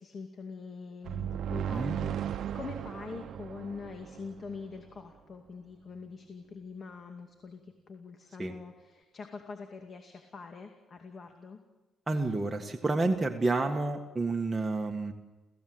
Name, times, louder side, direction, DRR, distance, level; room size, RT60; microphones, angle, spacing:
voice 1, 0.0-11.6, left 4 dB, 45° left, 4 dB, 2.3 m, -44 dB
sound 1, 1.0-4.8, right 9 dB, 70° right, 0.8 m, -36 dB
voice 2, 12.1-15.1, right 3 dB, 20° right, 2 dB, 1.8 m, -29 dB
28.5 x 16.0 x 8.0 m, 1.1 s
cardioid pair, 90°, 0 cm